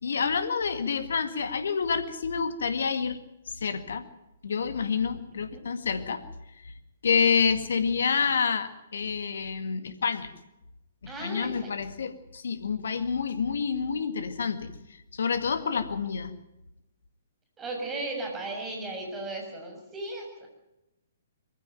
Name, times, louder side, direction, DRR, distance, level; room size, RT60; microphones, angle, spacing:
voice 1, 0.0-3.2 3.5-4.1 4.4-6.2 6.6-6.7 7.0-10.3 11.0-16.3, left 6 dB, 65° left, 10 dB, 2.0 m, -28 dB
voice 2, 11.1-11.7 17.6-20.5, right 2 dB, 15° right, 1 dB, 7.0 m, -36 dB
22.5 x 15.5 x 9.2 m, 0.92 s
figure-of-eight pair, 120°, 0 cm